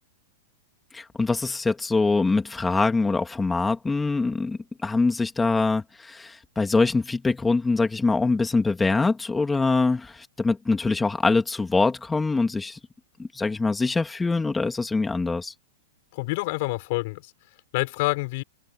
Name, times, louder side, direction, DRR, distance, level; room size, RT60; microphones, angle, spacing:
voice 1, 0.9-12.8 13.2-15.5, left 3 dB, 10° left, 2.7 m, -24 dB
voice 2, 16.1-17.3 17.7-18.4, left 23 dB, 55° left, 6.2 m, -27 dB
hypercardioid pair, 125°, 0 cm